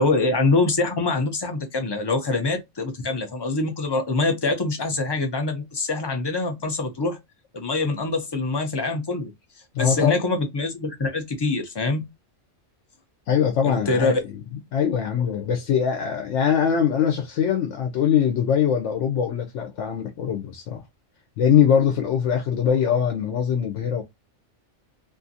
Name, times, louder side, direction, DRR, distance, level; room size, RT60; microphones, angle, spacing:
voice 1, 0.0-7.2 7.5-9.3 9.8-12.0 13.6-14.2, left 3 dB, 40° left, 0.3 m, -24 dB
voice 2, 9.7-10.2 13.3-14.4 14.7-20.8 21.4-24.0, left 8 dB, 80° left, 0.9 m, -22 dB
2.6 x 2.5 x 2.6 m
omnidirectional pair, 1.2 m